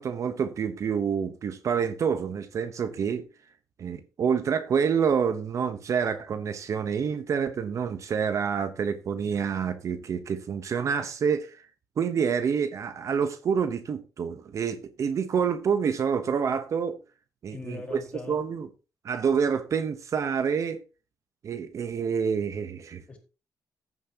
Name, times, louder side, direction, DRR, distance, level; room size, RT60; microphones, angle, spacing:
voice 1, 0.0-3.2 3.8-11.6 12.0-17.0 17.4-18.0 18.3-18.7 19.0-20.8 21.4-23.0, right 6 dB, 50° right, 1.0 m, -27 dB
voice 2, 17.5-18.4 23.1-23.2, left 3 dB, 15° left, 4.7 m, -40 dB
14.5 x 9.3 x 2.9 m
cardioid pair, 135°, 7 cm